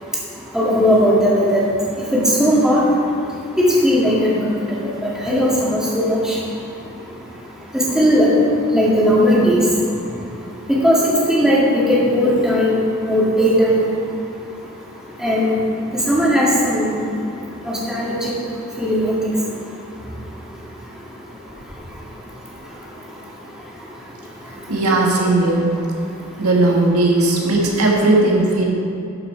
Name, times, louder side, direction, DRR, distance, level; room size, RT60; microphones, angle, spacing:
voice 1, 0.5-1.7 2.1-2.8 3.6-4.5 5.0-6.4 7.7-8.3 8.7-9.6 10.7-12.8 13.0-13.8 15.2-15.6 16.1-16.9 17.7-18.3 18.8-19.3, equal, 5° right, -7 dB, 2.1 m, -17 dB
voice 2, 24.7-25.6 26.4-28.6, right 2 dB, 85° right, -1 dB, 1.6 m, -16 dB
12.0 x 6.3 x 4.7 m, 2.6 s
head